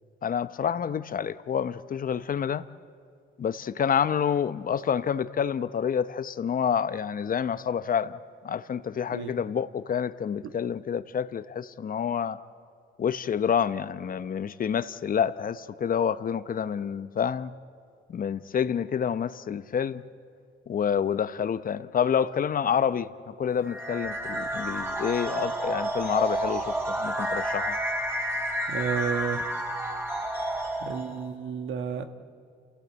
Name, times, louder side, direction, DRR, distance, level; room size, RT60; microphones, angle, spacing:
voice 1, 0.2-2.7 3.4-8.2 8.4-12.4 13.0-17.5 18.1-20.0 20.7-27.8, left 8 dB, 45° left, 14 dB, 0.8 m, -28 dB
voice 2, 9.1-9.4 28.7-29.4 30.8-32.1, right 7 dB, 75° right, 7 dB, 1.4 m, -31 dB
sound 1, 23.7-31.3, right 1 dB, 10° right, 2.9 m, -30 dB
30.0 x 16.0 x 8.1 m, 2.3 s
cardioid pair, 90°, 20 cm